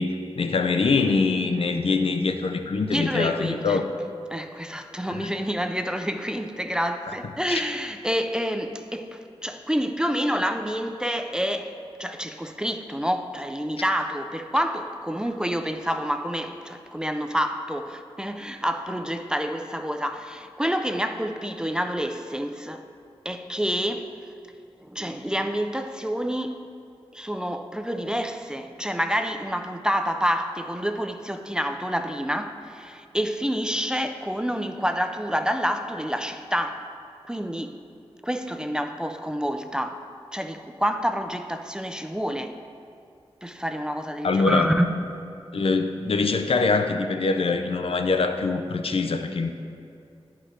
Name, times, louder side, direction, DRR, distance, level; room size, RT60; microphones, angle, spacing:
voice 1, 0.0-3.8 5.1-5.3 7.5-7.6 44.2-44.7 45.5-49.5, left 4 dB, 70° left, 0.5 m, -24 dB
voice 2, 2.9-3.8 4.3-22.9 23.3-24.2 24.8-26.6 27.1-36.9 37.3-37.8 38.2-40.0 40.3-42.5 43.4-44.9, equal, 10° right, 0.4 m, -28 dB
10.5 x 5.1 x 4.2 m
wide cardioid pair, 100°, 10 cm